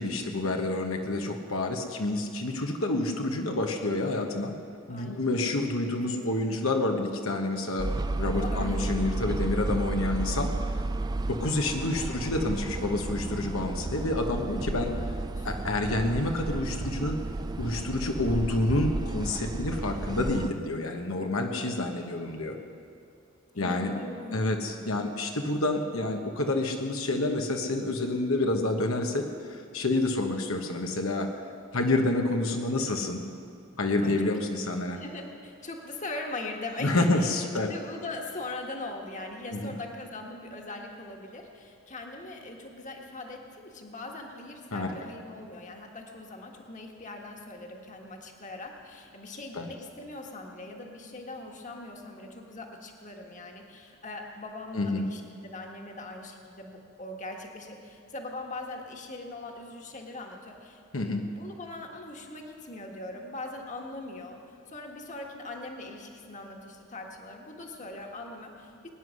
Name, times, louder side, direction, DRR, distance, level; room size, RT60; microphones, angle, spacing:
voice 1, 0.0-4.6 4.9-7.9 8.2-10.5 11.3-14.9 15.4-17.2 17.6-22.6 23.6-23.9 24.3-31.3 31.7-33.2 33.8-35.0 36.8-37.7 39.5-39.7 44.7-44.9 49.5-49.7 54.7-55.0 60.9-61.3, left 2 dB, 85° left, 3 dB, 1.2 m, -28 dB
voice 2, 4.9-6.7 8.3-8.9 12.0-12.3 14.9-15.0 15.3-15.5 20.9-21.3 23.5-24.7 34.0-34.1 34.5-34.6 34.9-37.4 37.7-60.8 61.3-68.9, left 2 dB, 35° left, 1 dB, 1.6 m, -41 dB
sound 1, 7.8-20.5, right 2 dB, 20° right, 0.3 m, -32 dB
21.5 x 9.7 x 6.3 m, 2.5 s
head